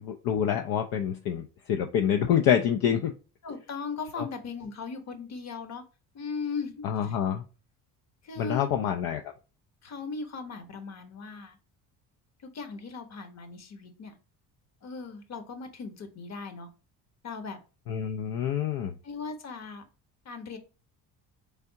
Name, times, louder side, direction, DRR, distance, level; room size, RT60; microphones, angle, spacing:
voice 1, 0.0-3.1 4.2-4.3 6.8-7.4 8.4-9.2 17.9-18.9, left 9 dB, 65° left, 5 dB, 0.6 m, -27 dB
voice 2, 3.4-5.8 6.1-7.2 8.2-8.7 9.8-11.6 12.4-14.1 14.8-16.7 17.2-17.6 19.0-19.8 20.2-20.6, left 4 dB, 45° left, 7 dB, 1.0 m, -38 dB
3.5 x 3.4 x 2.7 m, 0.33 s
supercardioid pair, 75°, 38 cm